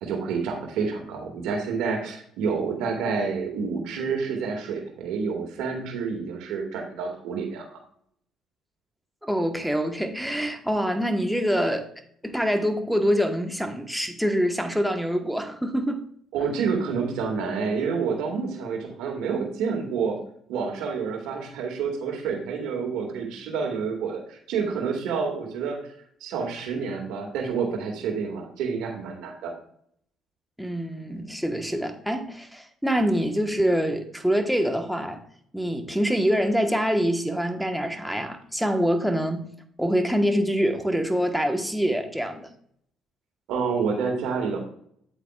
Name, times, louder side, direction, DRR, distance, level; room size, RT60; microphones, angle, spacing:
voice 1, 0.0-7.8 16.3-20.2 20.5-25.8 26.2-29.5 43.5-44.6, right 5 dB, 70° right, 2.2 m, -28 dB
voice 2, 9.2-11.9 12.2-16.0 30.6-35.2 35.5-39.5 39.8-42.5, equal, ahead, 1.3 m, -25 dB
8.9 x 8.2 x 2.5 m
hypercardioid pair, 60°, 0 cm